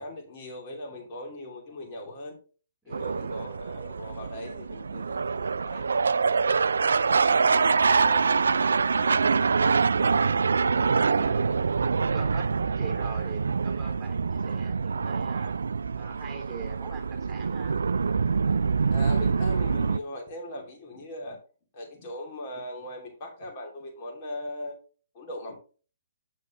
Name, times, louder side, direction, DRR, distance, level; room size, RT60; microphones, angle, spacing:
voice 1, 0.0-2.4 2.9-6.6 7.3-8.4 8.9-9.2 10.6-11.4 14.4-14.6 18.9-21.4 21.7-24.8 25.1-25.6, left 1 dB, 40° left, 0 dB, 2.7 m, -40 dB
voice 2, 2.8-3.4 11.0-11.6 12.0-15.5 15.9-17.8, right 5 dB, 15° right, 2 dB, 3.3 m, -44 dB
sound 1, 2.9-20.0, right 5 dB, 70° right, 0.3 m, -25 dB
9.7 x 6.4 x 3.1 m, 0.37 s
figure-of-eight pair, 130°, 0 cm